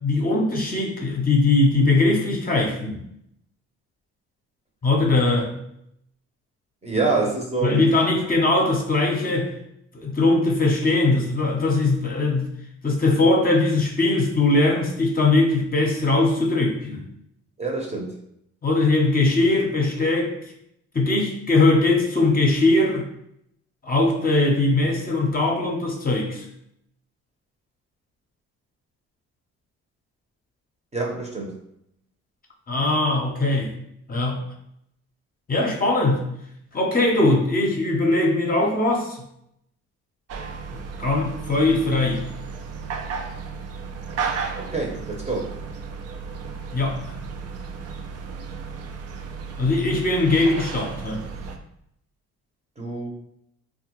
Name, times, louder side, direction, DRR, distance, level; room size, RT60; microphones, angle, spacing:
voice 1, 0.0-3.0 4.8-5.5 7.6-9.5 9.9-12.5 12.8-17.0 18.6-20.3 20.9-23.0 23.8-26.4 32.7-33.7 34.1-34.4 35.5-36.3 36.7-39.2 41.0-42.2 46.7-47.1 49.6-51.2, left 2 dB, 30° left, 0 dB, 0.7 m, -20 dB
voice 2, 6.8-8.1 17.6-18.1 30.9-31.5 44.5-45.5 52.8-53.1, right 3 dB, 20° right, -1 dB, 0.8 m, -26 dB
sound 1, 40.3-51.6, right 5 dB, 55° right, 0.5 m, -34 dB
3.3 x 2.3 x 3.0 m, 0.74 s
cardioid pair, 90°, 30 cm